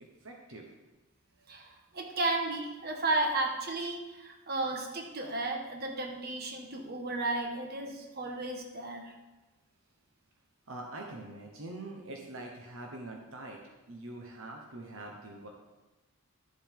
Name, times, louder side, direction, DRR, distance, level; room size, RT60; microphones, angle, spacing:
voice 1, 0.2-0.7 10.7-13.6 13.9-15.5, right 2 dB, 65° right, 1 dB, 1.1 m, -44 dB
voice 2, 1.5-9.1, right 2 dB, 45° right, 2 dB, 1.4 m, -33 dB
12.0 x 7.3 x 3.7 m, 1.1 s
head